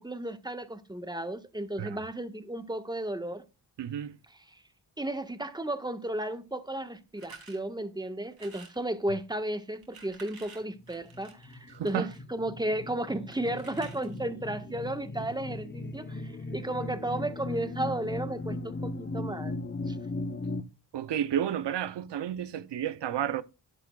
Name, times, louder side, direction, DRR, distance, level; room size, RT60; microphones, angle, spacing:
voice 1, 0.0-3.4 5.0-19.6 19.9-20.0, right 1 dB, 10° right, 1.4 m, -34 dB
voice 2, 3.8-4.2 11.7-12.1 20.9-23.4, right 10 dB, 75° right, 0.8 m, -31 dB
sound 1, 7.1-7.6 8.3-8.8 9.7-12.2 13.3-14.3, right 4 dB, 55° right, 4.2 m, -51 dB
sound 2, 10.8-20.6, left 2 dB, 25° left, 1.0 m, -38 dB
12.0 x 10.5 x 2.4 m
cardioid pair, 55°, 42 cm